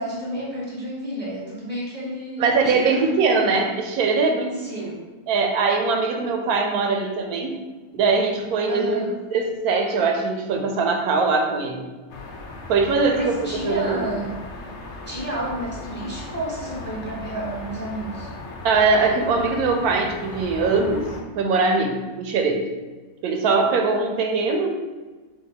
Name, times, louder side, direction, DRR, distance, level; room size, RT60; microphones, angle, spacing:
voice 1, 0.0-3.1 4.6-5.0 8.7-9.1 13.1-14.3 15.1-18.3, right 1 dB, 10° left, -6 dB, 0.7 m, -31 dB
voice 2, 2.4-4.8 5.3-7.6 7.9-11.8 12.7-14.1 18.6-21.1 21.3-22.7 23.2-24.7, right 4 dB, 85° right, 4 dB, 1.1 m, -21 dB
sound 1, 12.1-21.2, left 3 dB, 60° left, 0.8 m, -37 dB
4.3 x 2.4 x 4.0 m, 1.3 s
omnidirectional pair, 1.5 m